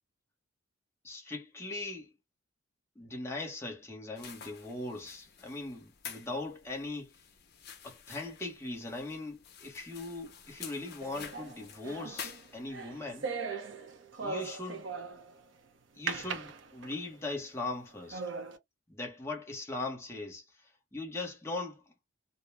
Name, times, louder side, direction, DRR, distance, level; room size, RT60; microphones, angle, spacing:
voice 1, 1.0-2.1 3.0-7.1 7.8-13.3 14.2-14.9 15.9-18.3 18.9-20.4 20.9-21.8, left 2 dB, 10° left, 0.8 m, -40 dB
sound 1, 4.2-13.0, left 7 dB, 50° left, 0.6 m, -49 dB
sound 2, 11.0-15.4 16.1-17.2 17.7-17.8 18.1-18.6, right 4 dB, 60° right, 0.7 m, -39 dB
2.6 x 2.0 x 3.2 m
head